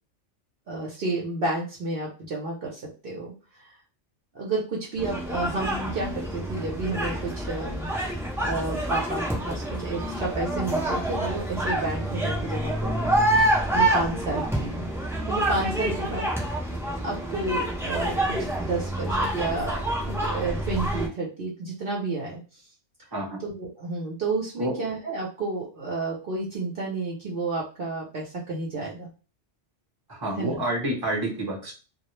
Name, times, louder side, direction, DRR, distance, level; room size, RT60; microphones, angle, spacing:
voice 1, 0.7-3.3 3.6-3.7 4.3-14.9 15.3-16.2 17.0-19.8 20.2-22.6 23.4-29.1 30.4-30.6, right 2 dB, 55° right, -3 dB, 0.8 m, -31 dB
sound 1, 5.0-21.1, right 1 dB, 5° right, 0.3 m, -27 dB
voice 2, 30.1-31.7, right 1 dB, 20° right, -2 dB, 0.8 m, -28 dB
2.3 x 2.0 x 3.0 m, 0.34 s
omnidirectional pair, 1.2 m